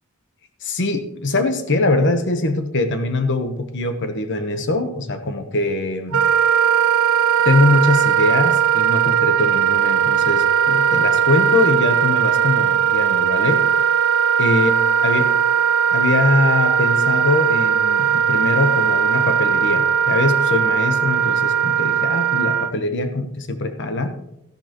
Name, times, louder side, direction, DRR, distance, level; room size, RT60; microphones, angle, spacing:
voice 1, 0.6-6.2 7.4-13.6 14.4-14.7 15.0-15.3 15.9-24.1, left 2 dB, 55° left, 8 dB, 1.1 m, -22 dB
Wind instrument woodwind instrument, 6.1-22.7, right 8 dB, 65° right, 0.5 m, -18 dB
13.0 x 11.5 x 3.0 m, 0.84 s
head